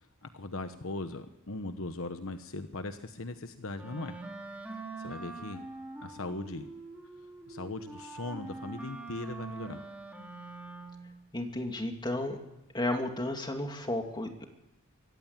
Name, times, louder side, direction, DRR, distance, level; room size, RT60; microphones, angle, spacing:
voice 1, 0.2-4.1 5.0-5.6 6.0-6.7 7.5-9.8, left 2 dB, 65° left, 9 dB, 1.1 m, -39 dB
Wind instrument woodwind instrument, 3.7-11.2, right 3 dB, 5° right, 3.3 m, -44 dB
voice 2, 11.3-12.4 12.7-14.5, left 1 dB, 20° left, 4 dB, 2.8 m, -33 dB
25.0 x 15.0 x 9.0 m, 0.96 s
head